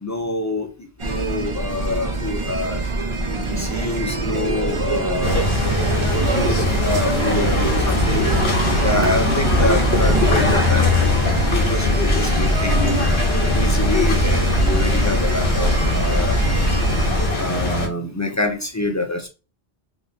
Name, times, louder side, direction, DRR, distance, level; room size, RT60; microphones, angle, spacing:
voice 1, 0.0-0.7 1.0-2.8 3.5-5.5 6.1-8.3 8.8-10.9 11.7-13.0 13.5-16.4 17.4-19.3, left 2 dB, 30° left, 0.3 m, -26 dB
sound 1, 1.0-17.3, right 2 dB, 35° right, 0.6 m, -23 dB
sound 2, 5.2-17.9, left 3 dB, 70° left, 1.3 m, -21 dB
voice 2, 16.1-16.4 16.7-17.4 18.3-18.4, left 9 dB, 90° left, 0.9 m, -41 dB
3.5 x 2.6 x 2.7 m
omnidirectional pair, 1.1 m